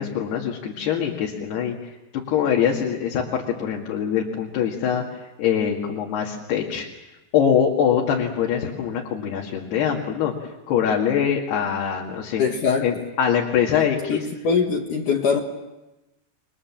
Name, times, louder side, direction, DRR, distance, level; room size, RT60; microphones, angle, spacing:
voice 1, 0.0-5.0 5.4-6.9 7.3-12.4 12.8-14.3, left 8 dB, 75° left, 4.1 m, -23 dB
voice 2, 12.4-12.9 14.1-14.2 14.4-15.4, left 6 dB, 55° left, 2.8 m, -21 dB
29.5 x 23.0 x 7.4 m
omnidirectional pair, 4.9 m